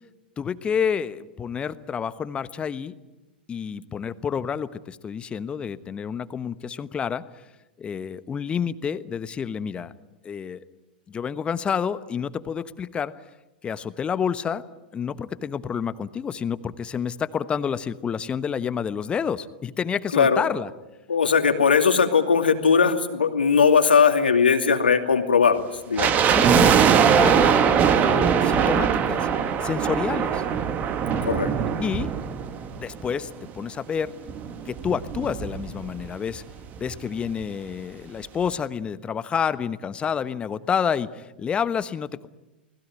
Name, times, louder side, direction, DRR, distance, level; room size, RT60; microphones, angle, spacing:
voice 1, 0.4-2.9 3.5-7.2 7.8-9.9 10.2-10.6 11.1-13.1 13.6-14.6 14.9-20.7 26.3-26.7 27.1-29.3 29.6-30.4 31.1-31.2 31.8-32.1 32.8-34.1 34.6-36.4 36.8-42.3, left 7 dB, 20° left, 14 dB, 1.1 m, -29 dB
voice 2, 21.1-26.1 31.2-31.5, left 6 dB, 75° left, 6 dB, 2.7 m, -19 dB
sound 1, 26.0-33.2 33.5-33.6 34.3-36.1 36.3-36.4 36.7-37.0 37.4-37.5, right 7 dB, 30° right, 2.0 m, -21 dB
29.5 x 20.0 x 9.2 m, 1.1 s
figure-of-eight pair, 95°, 5 cm